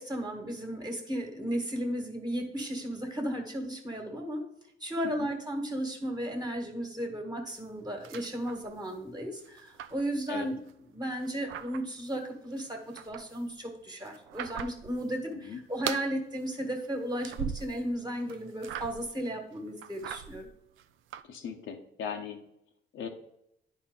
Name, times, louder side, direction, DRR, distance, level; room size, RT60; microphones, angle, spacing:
voice 1, 0.0-4.4 4.8-10.6 10.9-20.5, right 1 dB, 20° right, 3 dB, 1.5 m, -35 dB
sound 1, 7.5-9.0 9.3-10.7 11.1-12.2 12.5-15.1 15.3-16.1 16.5-17.9 18.2-19.2 19.6-21.2, right 10 dB, 80° right, 0.4 m, -41 dB
voice 2, 21.3-22.4 22.9-23.1, left 7 dB, 75° left, 3 dB, 0.9 m, -38 dB
10.0 x 4.2 x 3.7 m, 0.78 s
cardioid pair, 90°, 20 cm